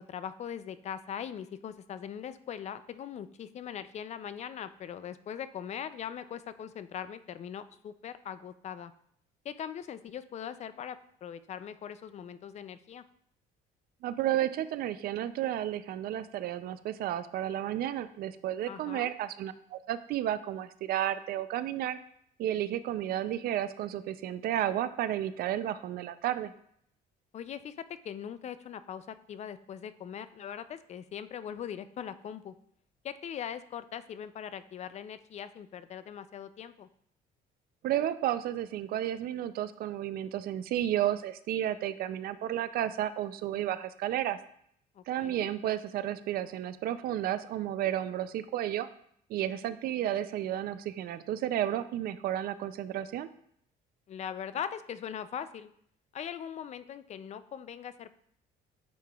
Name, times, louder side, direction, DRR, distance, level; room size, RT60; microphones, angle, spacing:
voice 1, 0.0-8.9 9.4-13.0 18.7-19.1 27.3-32.6 33.0-36.9 45.0-45.5 49.5-49.8 54.1-55.7 56.1-58.2, left 8 dB, 40° left, 13 dB, 0.4 m, -41 dB
voice 2, 14.0-22.0 22.4-26.5 37.8-44.4 45.1-48.9 49.3-53.3, right 12 dB, 65° right, 13 dB, 0.4 m, -32 dB
9.0 x 4.8 x 2.3 m, 0.67 s
cardioid pair, 110°, 17 cm